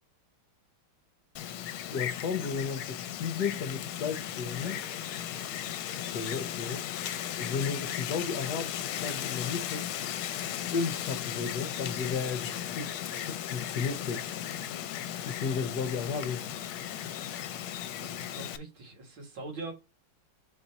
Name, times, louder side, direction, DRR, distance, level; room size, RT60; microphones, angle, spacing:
Wind, 1.4-18.6, left 10 dB, 80° left, 1.4 m, -36 dB
voice 1, 1.9-4.8 6.0-6.8 7.4-9.9 10.7-14.3 15.2-16.4, left 5 dB, 60° left, 1.2 m, -34 dB
voice 2, 17.9-19.7, right 3 dB, 70° right, 2.6 m, -43 dB
4.5 x 3.9 x 5.5 m
omnidirectional pair, 2.3 m